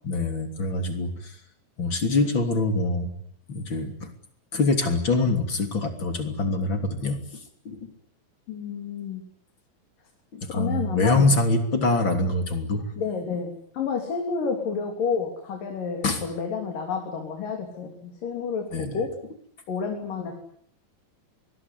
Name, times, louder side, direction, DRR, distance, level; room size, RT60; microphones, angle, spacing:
voice 1, 0.0-1.4 1.8-3.1 3.5-4.1 4.5-7.9 10.3-12.8 16.0-16.2 18.7-19.0, left 2 dB, 35° left, 7 dB, 3.7 m, -25 dB
voice 2, 8.5-9.2 10.5-11.3 13.0-19.1 19.7-20.3, left 6 dB, 70° left, 3 dB, 5.0 m, -30 dB
25.5 x 22.0 x 9.8 m, 0.65 s
omnidirectional pair, 4.0 m